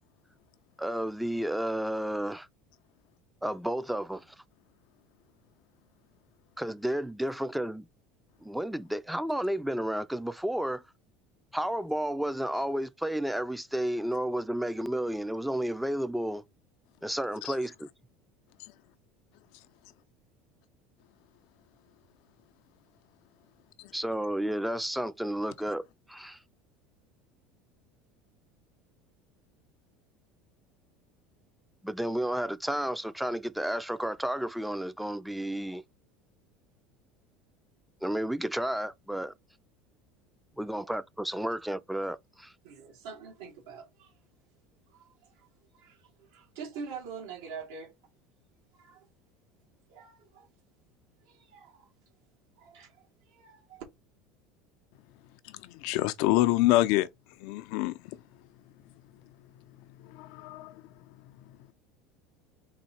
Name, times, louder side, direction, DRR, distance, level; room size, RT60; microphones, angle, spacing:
voice 1, 0.8-2.5 3.4-4.2 6.6-7.9 8.4-10.8 11.5-16.4 17.0-17.9 23.9-26.4 31.8-35.8 38.0-39.3 40.6-42.5, right 1 dB, 5° right, 0.4 m, -32 dB
voice 2, 42.6-44.1 44.9-45.5 45.7-47.9 48.7-49.1 49.9-50.5 51.2-51.9 52.6-53.8, right 5 dB, 90° right, 1.7 m, -45 dB
voice 3, 55.8-57.1 57.4-57.9 60.1-60.7, left 17 dB, 70° left, 0.5 m, -25 dB
4.1 x 2.7 x 4.3 m
supercardioid pair, 125°, 0 cm